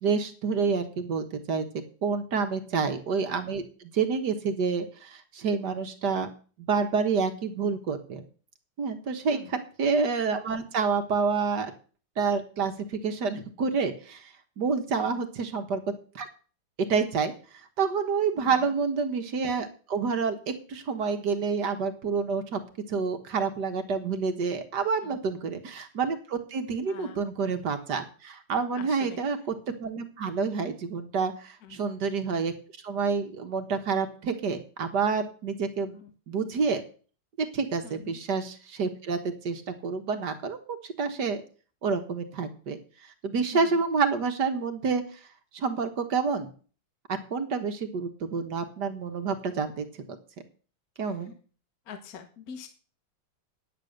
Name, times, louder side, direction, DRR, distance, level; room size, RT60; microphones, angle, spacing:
voice 1, 0.0-1.7 2.0-6.3 6.7-8.2 8.8-11.7 12.2-16.3 16.9-17.3 17.8-22.6 22.9-32.5 32.8-36.0 36.3-36.8 37.4-40.6 40.8-41.4 41.8-42.8 43.2-45.0 45.5-46.5 47.1-49.9 51.0-51.3, right 5 dB, 60° right, 8 dB, 1.8 m, -28 dB
voice 2, 28.8-29.2 31.6-31.8 35.8-36.1 37.8-38.2 43.5-43.7 51.0-51.1 51.9-52.7, left 7 dB, 50° left, 8 dB, 1.6 m, -44 dB
9.8 x 8.9 x 6.6 m, 0.39 s
omnidirectional pair, 2.2 m